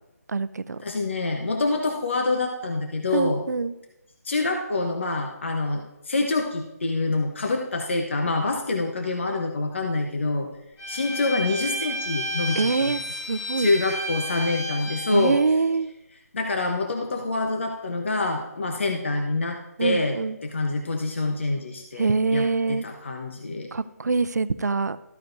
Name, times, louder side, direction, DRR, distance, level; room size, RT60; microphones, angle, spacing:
voice 1, 0.3-0.8 3.1-3.7 12.5-13.7 15.1-15.9 19.8-20.4 21.9-22.8 23.7-25.0, right 4 dB, 85° right, 14 dB, 0.5 m, -24 dB
voice 2, 0.8-3.4 4.2-10.5 10.9-12.9 13.6-15.4 16.3-20.2 20.4-23.7, left 3 dB, 45° left, 3 dB, 1.0 m, -26 dB
Bowed string instrument, 10.8-15.4, equal, 10° left, 1.4 m, -32 dB
13.0 x 9.3 x 2.6 m, 0.92 s
hypercardioid pair, 175°, 9 cm